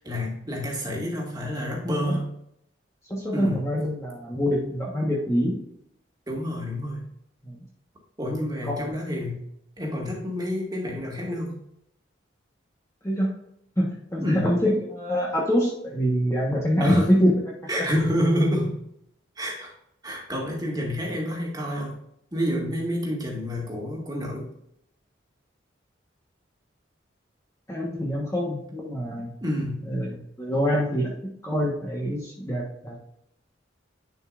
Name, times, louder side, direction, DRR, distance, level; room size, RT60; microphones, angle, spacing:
voice 1, 0.0-2.3 3.3-3.6 6.3-7.0 8.2-9.5 9.8-11.6 14.2-14.5 16.8-17.0 17.7-18.8 19.4-19.7 20.0-21.9 22.3-24.5 29.4-29.9, equal, 20° right, -2 dB, 2.1 m, -28 dB
voice 2, 3.1-5.6 7.4-7.6 8.6-8.9 13.0-13.3 13.8-17.3 17.8-17.9 27.7-29.3 29.8-31.2 31.4-33.0, equal, 15° left, -3 dB, 1.3 m, -25 dB
10.5 x 5.4 x 2.6 m, 0.74 s
head